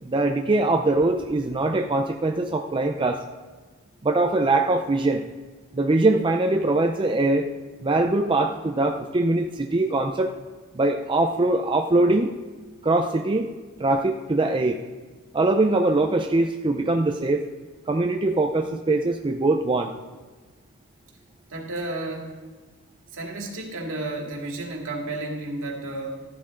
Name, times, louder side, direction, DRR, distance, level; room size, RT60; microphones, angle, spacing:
voice 1, 0.0-3.2 4.0-5.2 5.7-7.5 7.8-10.3 10.7-12.3 12.8-13.5 13.8-14.8 15.3-17.4 17.9-19.9, right 2 dB, 20° right, 4 dB, 0.5 m, -22 dB
voice 2, 21.5-22.3 23.1-26.3, right 2 dB, 60° right, 0 dB, 2.3 m, -32 dB
14.5 x 11.0 x 3.8 m, 1.4 s
head